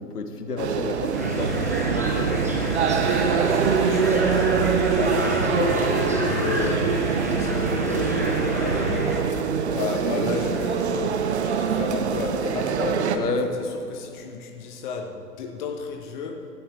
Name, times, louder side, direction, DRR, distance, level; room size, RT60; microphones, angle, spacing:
voice 1, 0.0-1.7 13.1-13.5, left 3 dB, 70° left, 7 dB, 1.5 m, -30 dB
sound 1, 0.6-13.2, right 6 dB, 45° right, 0.9 m, -24 dB
sound 2, 1.1-9.2, right 1 dB, 10° right, 0.4 m, -28 dB
voice 2, 3.4-4.6 4.9-9.2 9.7-16.5, left 4 dB, 30° left, 4 dB, 1.0 m, -32 dB
18.5 x 13.5 x 3.5 m, 3.0 s
figure-of-eight pair, 120°, 49 cm